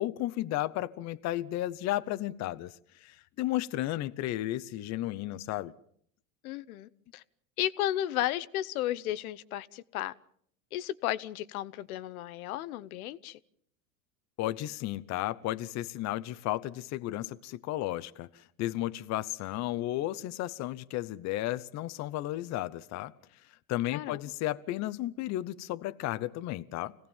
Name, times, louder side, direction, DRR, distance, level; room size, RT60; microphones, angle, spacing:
voice 1, 0.0-5.7 14.4-23.1 23.7-27.0, left 15 dB, 40° left, 0.9 m, -33 dB
voice 2, 6.4-7.2 7.6-10.1 10.7-13.4 23.9-24.2, left 13 dB, 75° left, 1.0 m, -34 dB
25.5 x 17.5 x 7.2 m
supercardioid pair, 115°, 43 cm